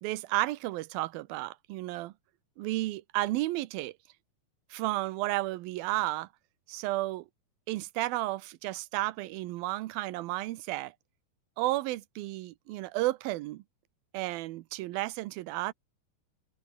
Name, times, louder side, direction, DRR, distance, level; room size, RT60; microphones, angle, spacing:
voice 1, 0.0-2.1 2.6-4.0 4.7-6.3 6.7-7.3 7.7-10.9 11.6-13.6 14.1-15.7, right 18 dB, 75° right, 2.5 m, -32 dB
omnidirectional pair, 4.6 m